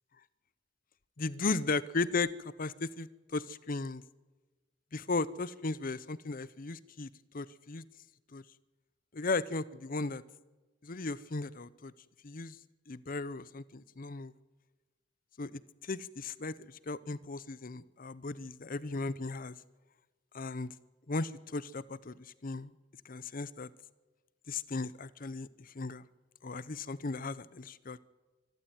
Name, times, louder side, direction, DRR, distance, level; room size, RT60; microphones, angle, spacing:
voice 1, 1.2-4.0 4.9-7.8 8.3-8.4 9.1-10.2 10.8-11.9 12.2-12.6 12.9-14.3 15.4-19.6 20.3-20.7 21.1-22.7 23.0-23.7 24.5-26.0 26.4-28.0, left 3 dB, 50° left, 18 dB, 0.8 m, -36 dB
25.0 x 13.5 x 9.1 m, 1.2 s
head